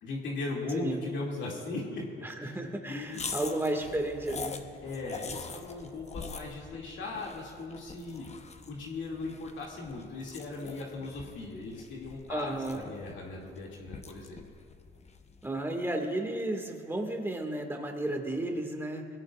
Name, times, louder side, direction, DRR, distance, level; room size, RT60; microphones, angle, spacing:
voice 1, 0.0-2.6 2.8-3.8 4.8-8.3 8.7-14.4, left 3 dB, 70° left, -3 dB, 2.5 m, -38 dB
voice 2, 0.7-1.0 2.2-4.7 12.3-12.9 15.4-19.1, right 1 dB, 10° right, 2 dB, 2.0 m, -33 dB
sound 1, 3.1-15.6, left 4 dB, 35° left, 1.0 m, -44 dB
22.0 x 16.5 x 2.5 m, 2.3 s
cardioid pair, 90°, 20 cm